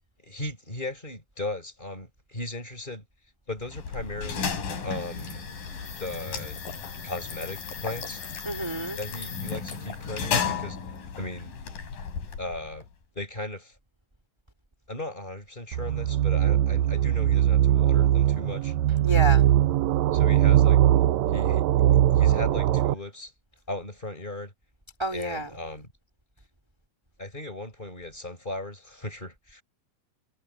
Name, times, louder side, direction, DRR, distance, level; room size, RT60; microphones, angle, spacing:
voice 1, 0.2-3.0 3.5-4.6 4.8-5.5 6.0-6.6 7.0-8.2 9.0-10.9 11.2-11.5 12.4-12.9 13.1-13.7 14.9-18.7 20.1-20.8 21.3-21.6 22.2-23.3 23.7-24.5 25.1-25.9 27.2-29.6, left 2 dB, 10° left, 6.0 m, -36 dB
sound 1, 3.6-12.9, left 6 dB, 65° left, 5.8 m, -34 dB
voice 2, 8.4-9.0 19.0-19.5 25.0-25.5, right 1 dB, 10° right, 1.6 m, -29 dB
sound 2, 15.7-22.9, right 12 dB, 90° right, 1.5 m, -21 dB
omnidirectional pair, 4.2 m